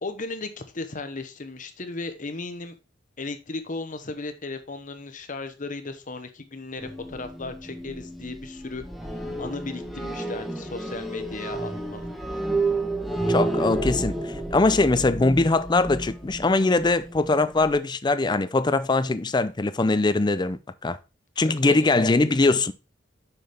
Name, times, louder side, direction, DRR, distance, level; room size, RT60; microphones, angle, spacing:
voice 1, 0.0-2.8 3.2-8.8 9.4-12.1 21.4-21.7, left 3 dB, 45° left, 1.0 m, -36 dB
sound 1, 6.8-17.7, right 2 dB, ahead, 1.0 m, -31 dB
voice 2, 13.3-21.0 21.4-22.7, left 3 dB, 25° left, 0.5 m, -22 dB
6.6 x 6.1 x 3.4 m
head